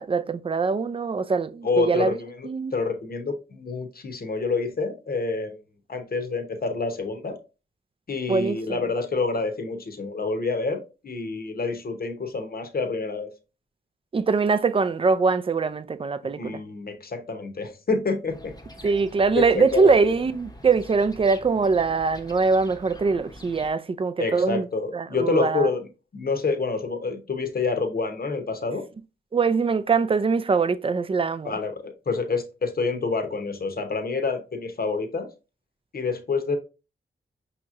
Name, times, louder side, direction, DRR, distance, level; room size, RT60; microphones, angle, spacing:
voice 1, 0.0-2.2 2.4-2.7 8.3-8.8 14.1-16.6 18.8-24.7 24.9-25.7 29.3-31.5, right 4 dB, 30° right, 0.4 m, -23 dB
voice 2, 1.6-5.6 5.9-7.4 8.1-13.3 16.4-18.5 19.7-19.9 24.2-25.9 26.1-28.8 31.4-35.3 35.9-36.6, left 4 dB, 50° left, 0.8 m, -27 dB
sound 1, 18.3-23.7, equal, 20° left, 0.8 m, -45 dB
5.3 x 2.9 x 2.4 m
cardioid pair, 60°, 20 cm